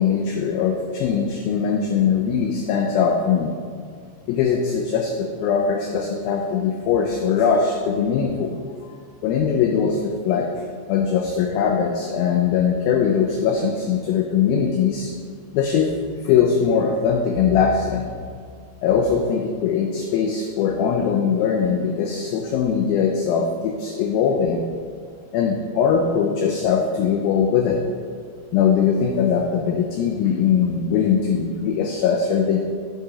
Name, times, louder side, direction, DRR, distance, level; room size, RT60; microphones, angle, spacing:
voice 1, 0.0-3.5 4.3-8.5 9.2-10.5 10.9-15.1 15.5-15.9 16.2-18.0 18.8-24.6 25.3-27.8 28.5-32.6, left 7 dB, 85° left, 2 dB, 2.1 m, -21 dB
8.2 x 3.9 x 4.8 m, 2.1 s
omnidirectional pair, 4.9 m